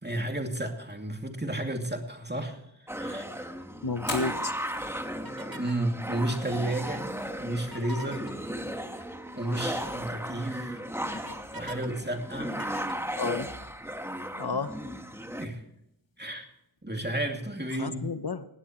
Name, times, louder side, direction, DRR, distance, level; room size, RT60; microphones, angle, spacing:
voice 1, 0.0-3.5 4.9-5.0 5.4-7.1 7.4-8.4 9.3-10.8 11.5-12.6 15.4-15.6 16.2-16.5 16.8-18.0, right 1 dB, 25° right, 4 dB, 2.5 m, -32 dB
sound 1, 2.9-15.5, equal, 5° right, 1.3 m, -36 dB
voice 2, 3.8-4.5 11.3-11.4 13.2-13.5 14.4-14.8 17.8-18.5, left 4 dB, 60° left, 11 dB, 1.0 m, -31 dB
Fire, 3.9-17.8, left 2 dB, 85° left, 3.4 m, -50 dB
sound 2, 5.2-5.9 7.6-8.3 10.0-10.1 10.5-11.9 12.2-13.8, left 1 dB, 50° right, 1.5 m, -43 dB
20.0 x 16.5 x 3.1 m, 0.80 s
wide cardioid pair, 45°, 44 cm